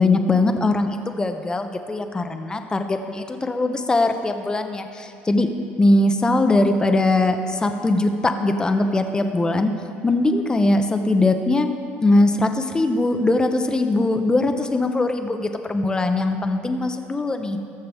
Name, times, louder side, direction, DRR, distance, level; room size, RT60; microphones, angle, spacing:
voice 1, 0.0-5.5 5.8-9.7 10.0-11.7 12.0-17.6, left 2 dB, 15° left, 7 dB, 0.8 m, -21 dB
20.0 x 6.7 x 3.5 m, 2.5 s
cardioid pair, 115°, 5 cm